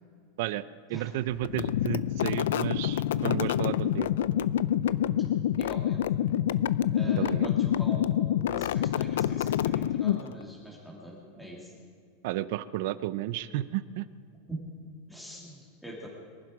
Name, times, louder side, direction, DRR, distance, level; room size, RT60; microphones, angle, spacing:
voice 1, 0.9-4.1 7.0-7.5 12.2-14.0, right 14 dB, 60° right, 16 dB, 0.6 m, -32 dB
sound 1, 1.4-10.4, left 11 dB, 90° left, 0.4 m, -27 dB
voice 2, 5.6-6.1 6.9-8.0 8.4-11.7 14.5-14.6 15.1-16.1, right 1 dB, ahead, -4 dB, 2.4 m, -43 dB
23.5 x 11.5 x 4.9 m, 2.2 s
supercardioid pair, 155°, 0 cm